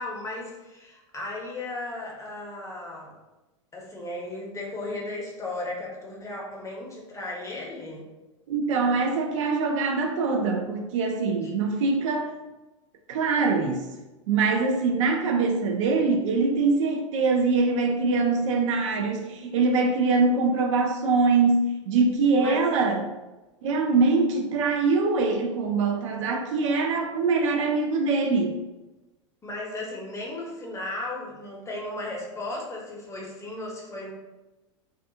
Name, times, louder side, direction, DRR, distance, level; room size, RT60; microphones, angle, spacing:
voice 1, 0.0-3.1 3.7-8.0 11.4-11.5 22.3-22.6 29.4-34.1, left 2 dB, 20° left, -3 dB, 0.7 m, -35 dB
voice 2, 8.5-12.3 13.1-13.9 14.3-23.0 23.6-28.6, right 4 dB, 70° right, 2 dB, 0.5 m, -23 dB
2.4 x 2.3 x 2.7 m, 1.1 s
hypercardioid pair, 100°, 17 cm